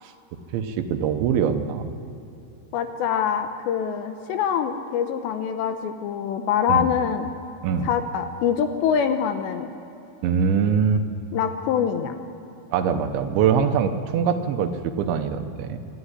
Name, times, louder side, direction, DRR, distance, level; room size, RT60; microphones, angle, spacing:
voice 1, 0.5-1.9 6.7-6.8 7.6-7.9 10.2-11.0 12.7-15.8, right 7 dB, 75° right, 7 dB, 3.2 m, -23 dB
voice 2, 2.7-7.3 7.8-9.7 11.3-12.1, left 8 dB, 75° left, 7 dB, 2.8 m, -24 dB
26.0 x 11.5 x 9.9 m, 2.9 s
omnidirectional pair, 5.6 m